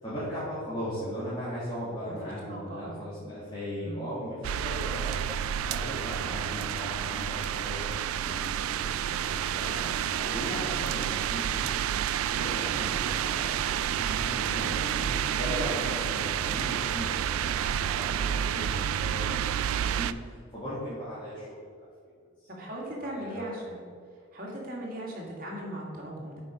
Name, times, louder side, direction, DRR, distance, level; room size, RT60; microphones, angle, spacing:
voice 1, 0.0-11.7 12.3-21.9 22.4-23.5, equal, 20° left, -11 dB, 2.0 m, -38 dB
voice 2, 2.5-3.2 3.8-4.0 22.5-23.8 24.3-26.4, right 1 dB, 45° right, -3 dB, 2.0 m, -38 dB
sound 1, 4.4-20.1, right 9 dB, 90° right, 0.3 m, -30 dB
7.6 x 5.3 x 5.1 m, 2.2 s
head